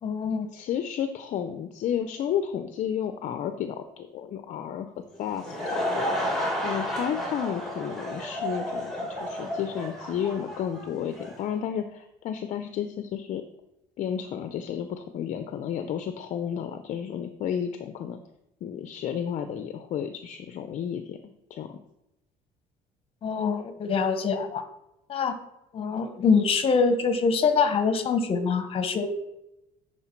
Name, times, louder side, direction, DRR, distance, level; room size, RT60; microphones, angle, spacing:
voice 1, 0.0-0.5 23.2-24.6 25.1-25.4 25.7-29.1, left 5 dB, 40° left, 9 dB, 1.0 m, -24 dB
voice 2, 0.5-4.9 5.2-6.1 6.6-13.4 14.0-18.2 18.6-21.8, left 9 dB, 55° left, 9 dB, 0.5 m, -32 dB
Laughter / Crowd, 5.1-11.4, equal, ahead, 2.1 m, -31 dB
9.9 x 4.5 x 4.5 m, 0.88 s
cardioid pair, 130°, 15 cm